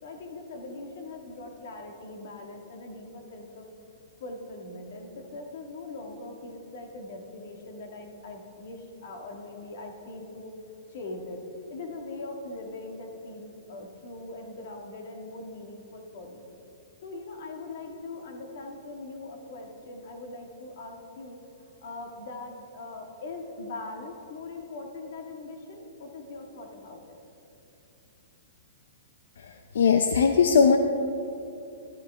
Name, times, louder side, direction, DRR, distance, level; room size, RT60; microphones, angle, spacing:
voice 1, 0.0-3.7 4.2-10.5 10.9-11.4 11.7-16.5 17.0-21.4 21.8-27.2, left 2 dB, 55° left, 3 dB, 1.6 m, -41 dB
voice 2, 29.4-30.8, left 6 dB, 85° left, 6 dB, 0.6 m, -20 dB
12.5 x 12.0 x 3.4 m, 2.8 s
hypercardioid pair, 160°, 0 cm